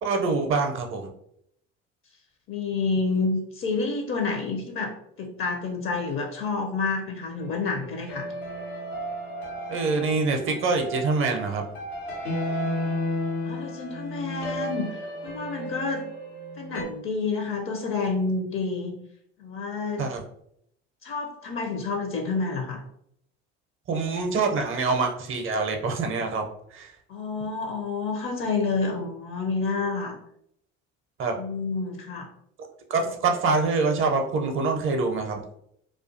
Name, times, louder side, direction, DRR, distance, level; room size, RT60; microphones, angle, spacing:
voice 1, 0.0-1.1 9.7-11.6 20.0-20.2 23.9-26.4 26.7-26.9 31.2-31.4 32.9-35.4, right 4 dB, 40° right, 4 dB, 0.5 m, -25 dB
voice 2, 2.5-8.3 13.4-16.0 16.6-18.9 19.4-20.0 21.0-22.8 27.1-30.2 31.4-32.3 33.0-33.1, left 4 dB, 40° left, 3 dB, 0.5 m, -29 dB
sound 1, 7.3-16.8, left 1 dB, 85° left, 0.7 m, -33 dB
2.3 x 2.3 x 2.5 m, 0.72 s
hypercardioid pair, 60°, 32 cm